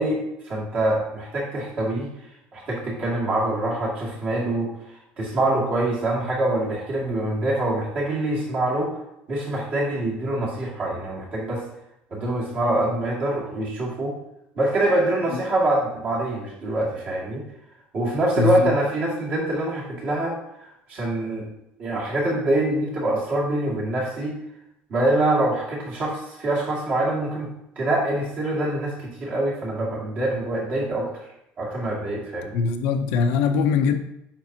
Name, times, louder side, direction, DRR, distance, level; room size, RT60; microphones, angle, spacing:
voice 1, 0.0-2.1 2.5-4.7 5.2-9.0 9.3-11.6 12.1-14.2 14.5-17.4 17.9-20.3 20.6-21.5 21.8-24.4 24.9-31.3 31.6-32.6, right 1 dB, 35° right, 2.3 m, -25 dB
voice 2, 18.4-18.8 32.5-34.0, left 5 dB, 75° left, 0.7 m, -21 dB
8.6 x 5.9 x 2.8 m
cardioid pair, 175°, 4 cm